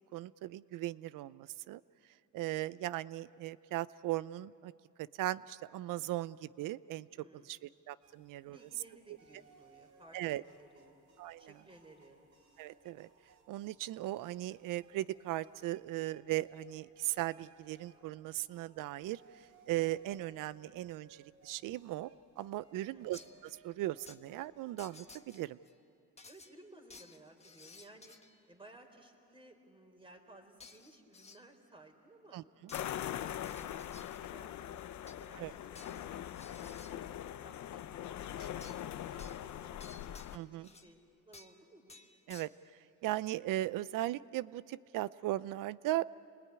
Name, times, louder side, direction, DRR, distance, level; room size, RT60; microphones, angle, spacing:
voice 1, 0.1-1.8 2.3-4.7 5.0-7.1 7.5-7.6 7.9-8.6 10.1-10.4 11.2-11.5 12.6-13.1 13.5-19.2 19.7-22.1 22.4-23.2 23.6-25.6 32.3-32.4 35.4-35.5 40.3-40.7 42.3-42.5 43.0-46.1, right 15 dB, 75° right, 18 dB, 0.7 m, -38 dB
voice 2, 7.1-7.6 8.4-10.9 11.4-12.3 22.9-23.3 26.3-28.2 28.5-32.4 32.8-33.6 33.9-36.2 36.6-40.2 40.5-41.0 41.2-41.9, right 1 dB, 15° right, 3 dB, 4.1 m, -59 dB
sound 1, 8.0-25.2, right 5 dB, 60° right, 3.7 m, -65 dB
sound 2, 23.1-23.5 24.1-24.2 24.8-25.7 26.2-28.4 30.6-31.4 32.7-32.9 33.4-34.3 34.8-35.3 35.7-37.0 38.6-38.9 39.2-40.9 41.3-41.6 41.9-42.5, left 4 dB, 20° left, 1.5 m, -56 dB
sound 3, 32.7-40.4, left 11 dB, 60° left, 0.9 m, -42 dB
29.5 x 20.5 x 9.6 m, 2.6 s
cardioid pair, 100°, 32 cm